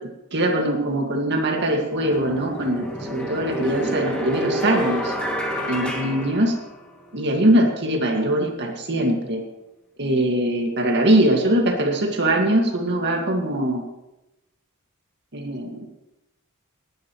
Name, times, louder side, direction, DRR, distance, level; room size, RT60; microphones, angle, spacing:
voice 1, 0.3-5.1 5.7-6.6 7.1-9.4 10.0-13.9 15.3-15.9, right 1 dB, 55° right, 2 dB, 2.0 m, -22 dB
sound 1, 1.9-7.1, right 1 dB, 5° left, 2.3 m, -28 dB
19.0 x 10.0 x 3.1 m, 0.94 s
head